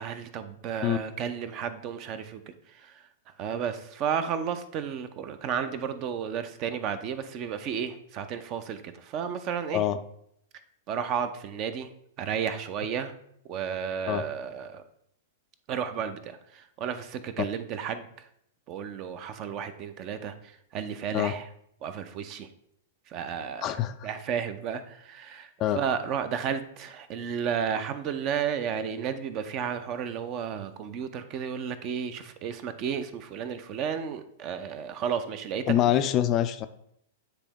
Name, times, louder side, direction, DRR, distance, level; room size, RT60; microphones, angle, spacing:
voice 1, 0.0-2.4 3.4-9.8 10.9-11.9 12.2-13.1 13.5-14.8 15.7-16.4 16.8-18.0 18.7-20.3 20.7-21.4 21.8-22.5 23.1-25.5 25.8-35.6, right 7 dB, 35° right, 11 dB, 0.5 m, -32 dB
voice 2, 23.6-24.1 25.6-25.8 35.7-36.7, left 11 dB, 30° left, 10 dB, 0.3 m, -25 dB
9.6 x 3.4 x 3.0 m, 0.72 s
figure-of-eight pair, 100°, 0 cm